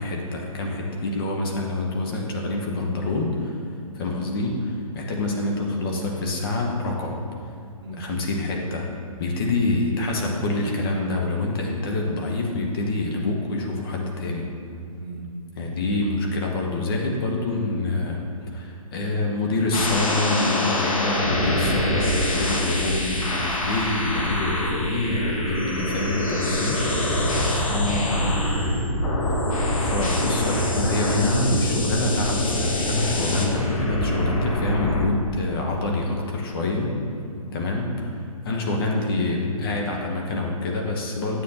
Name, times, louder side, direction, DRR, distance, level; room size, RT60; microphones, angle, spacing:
voice 1, 0.0-7.2 8.0-8.9 9.2-14.5 15.6-26.8 27.7-28.3 29.8-36.9 37.5-38.2 38.4-41.4, left 2 dB, 40° left, 0 dB, 1.0 m, -26 dB
sound 1, 19.7-35.0, left 1 dB, 65° left, 1.3 m, -25 dB
voice 2, 26.8-27.9 28.1-29.0 29.7-30.0 37.3-37.5, right 2 dB, 40° right, -5 dB, 1.7 m, -39 dB
9.1 x 6.8 x 2.8 m, 2.5 s
hypercardioid pair, 145°, 19 cm